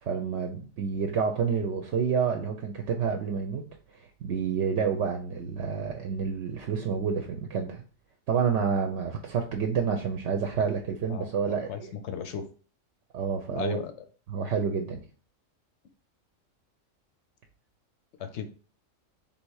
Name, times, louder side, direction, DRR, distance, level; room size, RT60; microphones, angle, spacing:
voice 1, 0.0-3.6 4.2-7.8 8.3-11.9 13.1-13.8 14.3-15.0, right 6 dB, 65° right, 3 dB, 0.8 m, -29 dB
voice 2, 11.1-12.5 13.5-13.9 18.2-18.5, left 7 dB, 65° left, 8 dB, 0.8 m, -36 dB
3.4 x 2.8 x 4.6 m, 0.39 s
omnidirectional pair, 1.4 m